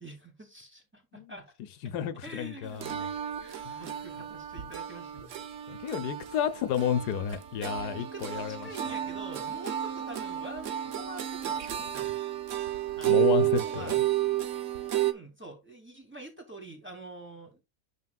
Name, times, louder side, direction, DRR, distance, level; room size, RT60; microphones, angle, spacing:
voice 1, 0.0-1.5 1.8-1.9 2.2-3.1 3.4-5.4 7.6-12.2 13.0-13.4 13.6-14.0 14.9-17.6, right 1 dB, 5° right, 2.3 m, -46 dB
voice 2, 1.8-2.8 3.6-3.8 5.7-8.6 13.1-13.9, left 9 dB, 85° left, 1.3 m, -31 dB
sound 1, 2.8-15.1, right 13 dB, 60° right, 1.0 m, -31 dB
9.4 x 6.2 x 2.3 m
omnidirectional pair, 1.7 m